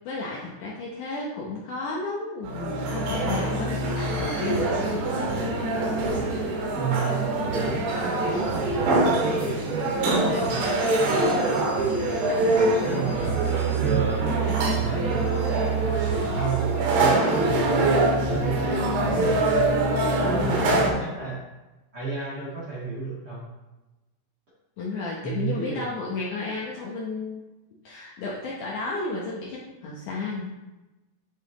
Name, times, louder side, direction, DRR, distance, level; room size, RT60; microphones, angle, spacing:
voice 1, 0.0-5.7 6.3-6.5 12.0-12.7 13.1-13.3 14.3-14.7 20.2-21.0 24.8-27.4 27.8-30.5, left 3 dB, 80° left, -4 dB, 1.8 m, -33 dB
sound 1, 2.4-20.9, right 2 dB, 85° right, 3.5 m, -24 dB
voice 2, 6.7-11.8 12.4-14.5 14.8-15.3 15.8-19.6 20.3-21.4 21.9-23.5 25.2-25.8, right 4 dB, 50° right, -7 dB, 1.2 m, -32 dB
8.6 x 6.2 x 3.1 m, 1.1 s
omnidirectional pair, 4.9 m